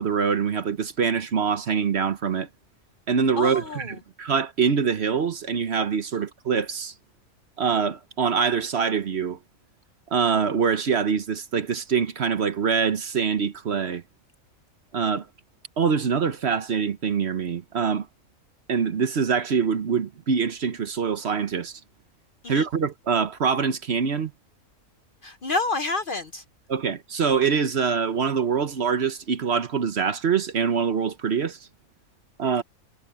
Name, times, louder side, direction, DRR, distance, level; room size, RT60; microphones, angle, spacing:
voice 1, 0.0-2.5 3.1-6.9 7.6-9.4 10.1-14.0 14.9-15.3 15.8-18.1 18.7-21.8 22.5-24.3 26.7-31.6 32.4-32.6, right 6 dB, 50° right, 1.1 m, -24 dB
voice 2, 3.4-3.9 22.4-22.6 25.2-26.4, left 3 dB, 45° left, 0.8 m, -28 dB
omnidirectional pair, 1.5 m